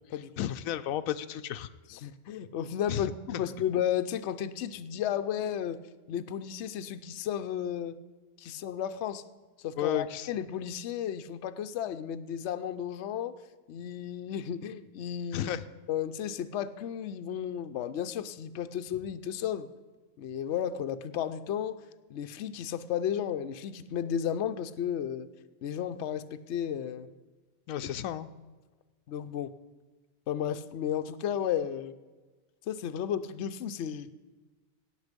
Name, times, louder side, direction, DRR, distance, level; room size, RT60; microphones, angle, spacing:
voice 1, 0.4-1.7 2.9-3.1 3.3-3.4 9.8-10.3 15.3-15.6 27.7-28.3, left 11 dB, 90° left, 11 dB, 1.0 m, -32 dB
voice 2, 1.9-5.8 6.1-8.0 8.4-9.2 9.6-13.3 13.7-15.5 15.9-19.7 20.2-21.7 22.1-25.3 25.6-27.1 29.1-29.5 30.3-31.9 32.7-34.1, left 9 dB, 65° left, 10 dB, 0.9 m, -33 dB
18.0 x 7.2 x 5.2 m, 1.3 s
omnidirectional pair, 1.4 m